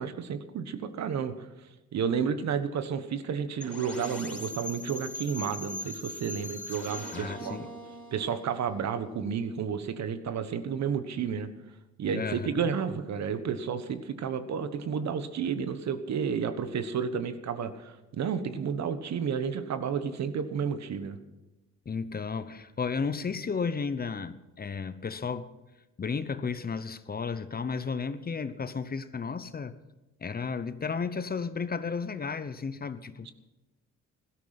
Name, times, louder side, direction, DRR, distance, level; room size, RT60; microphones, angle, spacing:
voice 1, 0.0-7.6 8.1-11.5 12.0-21.2 33.2-33.3, right 7 dB, 65° right, 1.4 m, -31 dB
sound 1, 3.6-9.4, left 1 dB, 5° left, 4.9 m, -41 dB
voice 2, 7.1-7.7 12.1-12.7 21.9-25.5 26.0-29.8 30.2-33.3, left 5 dB, 30° left, 0.9 m, -33 dB
16.0 x 13.0 x 5.9 m
cardioid pair, 90°, 30 cm